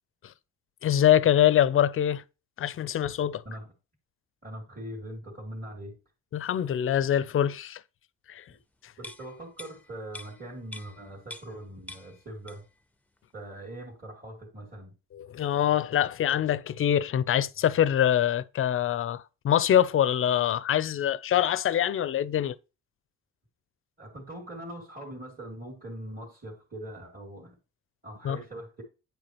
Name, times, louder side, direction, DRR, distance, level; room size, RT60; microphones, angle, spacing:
voice 1, 0.8-2.2 2.6-3.4 6.3-7.8 8.3-8.4 15.1-22.6 28.2-28.4, left 10 dB, 45° left, 0.5 m, -24 dB
voice 2, 4.4-6.0 8.5-8.6 9.0-12.6 13.3-14.9 24.0-27.6 28.0-28.8, right 1 dB, 30° right, 2.7 m, -41 dB
sound 1, 9.0-11.6 11.9-12.8 13.2-13.3, left 2 dB, 5° left, 0.6 m, -46 dB
9.1 x 4.9 x 3.0 m
cardioid pair, 90°, 30 cm